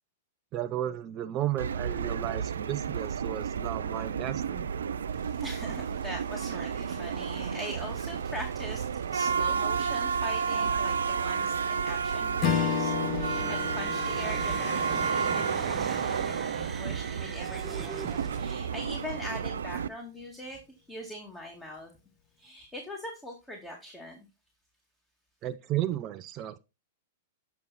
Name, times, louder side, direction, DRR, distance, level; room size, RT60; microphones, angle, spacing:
voice 1, 0.5-4.7 25.4-26.6, right 12 dB, 35° right, 0.6 m, -33 dB
sound 1, 1.6-19.9, right 6 dB, 80° right, 0.5 m, -31 dB
voice 2, 5.1-21.9 22.4-24.2, left 1 dB, 10° left, 2.2 m, -42 dB
Strum, 12.4-17.0, left 10 dB, 40° left, 1.1 m, -33 dB
sound 2, 13.2-18.9, right 4 dB, 15° right, 1.0 m, -41 dB
8.5 x 5.9 x 4.1 m
hypercardioid pair, 110°, 0 cm